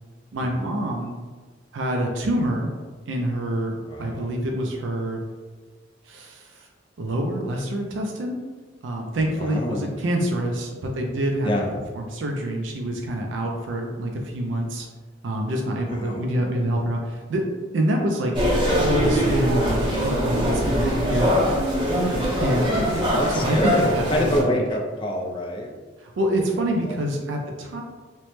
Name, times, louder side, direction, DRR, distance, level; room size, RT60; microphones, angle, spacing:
voice 1, 0.3-1.2 1.7-2.7 3.1-5.2 6.0-6.7 7.0-8.4 8.8-11.5 11.9-14.9 15.2-17.4 17.7-18.5 18.8-21.3 22.4-22.9 23.3-24.6 26.0-27.8, right 1 dB, 75° right, 1 dB, 0.4 m, -26 dB
voice 2, 3.9-4.3 9.4-9.9 11.4-11.7 16.0-16.2 22.9-25.7 26.9-27.0, left 1 dB, 25° left, -1 dB, 0.3 m, -26 dB
sound 1, 18.3-24.4, equal, 25° right, 0.7 m, -22 dB
3.0 x 2.0 x 3.0 m, 1.4 s
head